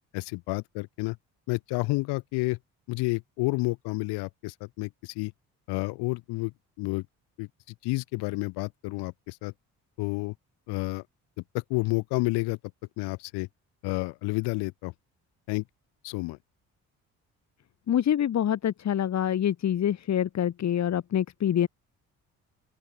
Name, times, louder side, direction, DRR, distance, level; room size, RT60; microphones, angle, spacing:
voice 1, 0.1-1.2 1.5-2.6 2.9-5.3 5.7-6.5 6.8-7.0 7.4-7.5 7.8-9.5 10.0-10.3 10.7-11.0 11.5-12.6 13.0-13.5 13.8-14.9 15.5-15.6 16.0-16.4, left 23 dB, 80° left, 2.0 m, -30 dB
voice 2, 17.9-21.7, left 10 dB, 45° left, 0.9 m, -26 dB
open air
hypercardioid pair, 55°, 39 cm